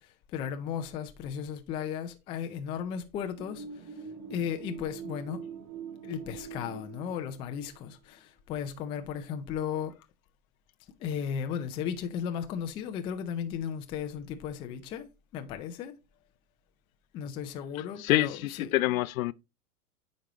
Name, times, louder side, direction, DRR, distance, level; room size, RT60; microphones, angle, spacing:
voice 1, 0.0-3.9 4.3-5.4 6.0-9.9 11.0-15.1 15.3-15.9 17.1-18.8, left 8 dB, 15° left, 0.3 m, -35 dB
sound 1, 3.4-7.8, right 6 dB, 70° right, 4.4 m, -43 dB
voice 2, 18.0-19.3, left 16 dB, 65° left, 0.5 m, -27 dB
9.0 x 5.2 x 2.9 m
hypercardioid pair, 115°, 46 cm